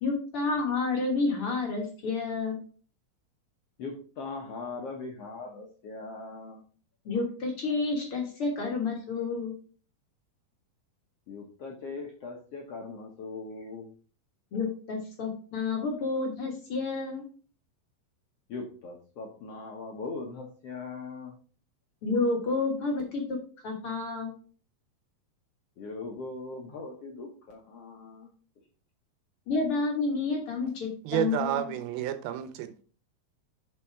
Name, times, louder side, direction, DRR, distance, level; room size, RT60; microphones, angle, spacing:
voice 1, 0.0-2.6 7.1-9.5 14.5-17.2 22.0-23.4 23.6-24.4 29.5-31.7, left 3 dB, 50° left, 1 dB, 1.9 m, -30 dB
voice 2, 3.8-6.6 11.3-13.9 18.5-21.3 25.8-28.3, left 3 dB, 65° left, 0 dB, 1.5 m, -40 dB
voice 3, 31.1-32.8, right 11 dB, 90° right, 10 dB, 2.7 m, -30 dB
6.9 x 5.8 x 4.6 m, 0.40 s
omnidirectional pair, 4.2 m